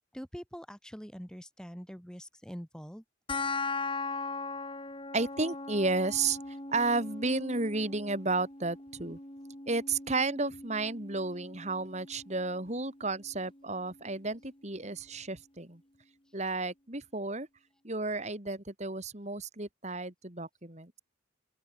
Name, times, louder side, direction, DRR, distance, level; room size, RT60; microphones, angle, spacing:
voice 1, 0.1-3.0, equal, 5° left, 2.9 m, -44 dB
sound 1, 3.3-14.3, left 3 dB, 30° left, 4.9 m, -40 dB
voice 2, 5.1-9.2 9.7-15.8 16.3-17.5 17.8-21.0, right 3 dB, 35° right, 3.1 m, -32 dB
open air
head